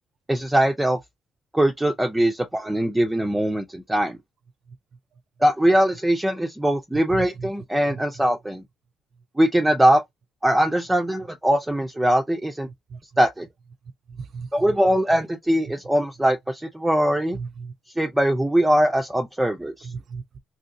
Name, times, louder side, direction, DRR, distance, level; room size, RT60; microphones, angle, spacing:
voice 1, 0.3-1.0 1.5-4.2 5.4-8.6 9.4-10.0 10.4-12.7 13.2-13.5 14.5-17.4 18.0-19.9, right 1 dB, 10° right, 0.5 m, -21 dB
voice 2, 7.1-7.5 7.9-8.0 12.9-13.0 14.2-14.5 17.3-17.7 19.8-20.4, right 5 dB, 60° right, 0.4 m, -35 dB
3.0 x 2.7 x 2.6 m
cardioid pair, 90°, 0 cm